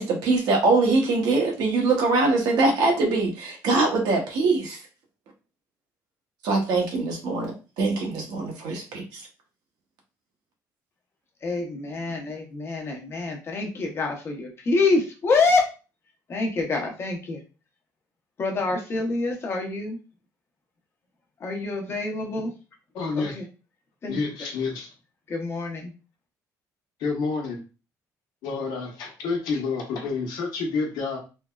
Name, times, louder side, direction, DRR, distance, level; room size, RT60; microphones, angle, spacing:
voice 1, 0.0-4.8 6.4-9.2, right 3 dB, 80° right, 1 dB, 0.9 m, -23 dB
voice 2, 11.4-15.6 16.3-17.4 18.4-20.0 21.4-22.5 23.1-23.5 24.0-24.3 25.3-25.9, left 3 dB, 35° left, 2 dB, 0.8 m, -26 dB
voice 3, 22.9-23.3 24.1-24.9 27.0-27.6 28.4-31.2, left 4 dB, 85° left, 1 dB, 0.8 m, -28 dB
3.3 x 2.1 x 2.3 m, 0.32 s
cardioid pair, 125°, 7 cm